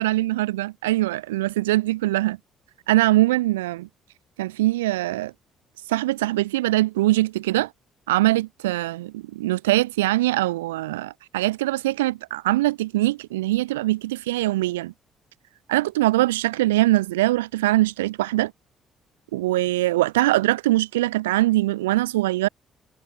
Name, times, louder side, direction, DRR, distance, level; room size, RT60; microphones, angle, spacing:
voice 1, 0.0-2.4 2.9-3.9 4.4-5.3 5.9-7.7 8.1-14.9 15.7-18.5 19.3-22.5, right 17 dB, 85° right, 3.1 m, -22 dB
hypercardioid pair, 50°, 0 cm